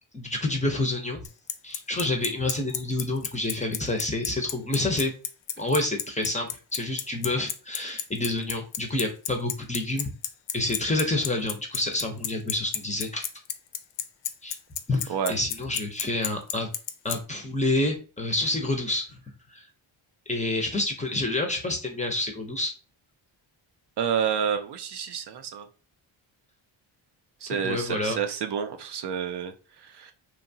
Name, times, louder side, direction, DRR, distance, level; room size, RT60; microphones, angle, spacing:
voice 1, 0.1-1.2 1.6-5.1 5.6-10.1 10.5-13.3 14.4-14.6 14.9-16.7 17.0-19.0 19.5-19.6 20.3-22.7 27.5-28.2, left 2 dB, 15° left, 3 dB, 0.5 m, -28 dB
Bicycle, 1.2-17.2, left 10 dB, 65° left, 0.5 m, -30 dB
voice 2, 24.0-25.7 27.4-30.1, right 7 dB, 60° right, 6 dB, 0.5 m, -29 dB
2.8 x 2.2 x 2.6 m, 0.35 s
cardioid pair, 95°, 48 cm